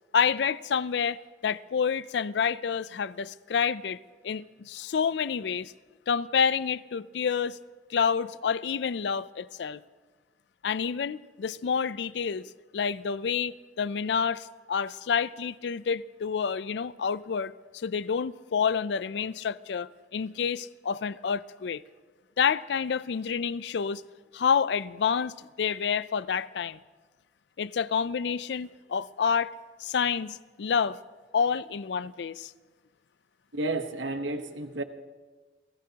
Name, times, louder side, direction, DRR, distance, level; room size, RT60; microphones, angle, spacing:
voice 1, 0.1-4.0 4.2-5.7 6.1-7.6 7.9-9.8 10.6-21.8 22.4-24.0 24.3-26.8 27.6-29.5 29.8-31.0 31.3-32.5, left 6 dB, 70° left, 0.4 m, -28 dB
voice 2, 33.5-34.8, right 2 dB, 90° right, 1.1 m, -31 dB
29.5 x 17.0 x 2.9 m
head